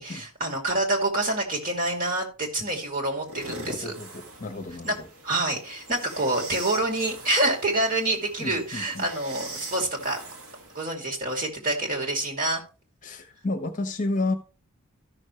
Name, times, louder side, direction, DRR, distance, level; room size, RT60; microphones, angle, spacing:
voice 1, 0.0-4.0 4.8-4.9 5.2-10.2 10.7-12.6, right 2 dB, 40° right, 2.6 m, -27 dB
sound 1, 3.2-10.8, right 2 dB, 80° right, 2.1 m, -41 dB
voice 2, 3.7-5.1 8.4-9.0 13.0-14.3, left 2 dB, 35° left, 1.1 m, -31 dB
14.0 x 6.3 x 3.2 m
head